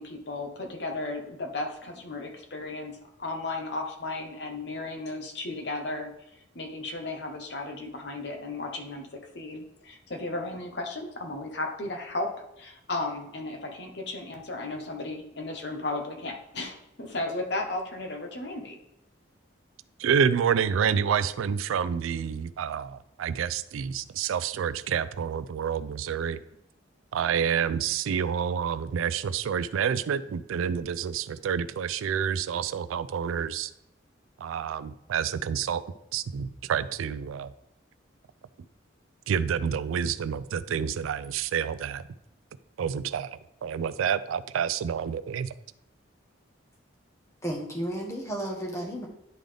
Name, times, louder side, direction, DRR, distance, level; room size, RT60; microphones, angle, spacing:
voice 1, 0.0-2.9 3.2-6.1 6.5-12.3 12.6-18.8, left 2 dB, 55° left, 3 dB, 1.0 m, -35 dB
voice 2, 20.0-26.4 27.1-33.7 34.4-35.8 36.1-37.5 39.3-42.0 42.8-45.5, right 7 dB, 85° right, 15 dB, 0.3 m, -28 dB
voice 3, 47.4-49.1, right 1 dB, 15° left, 0 dB, 1.2 m, -33 dB
10.5 x 3.8 x 3.4 m, 0.82 s
head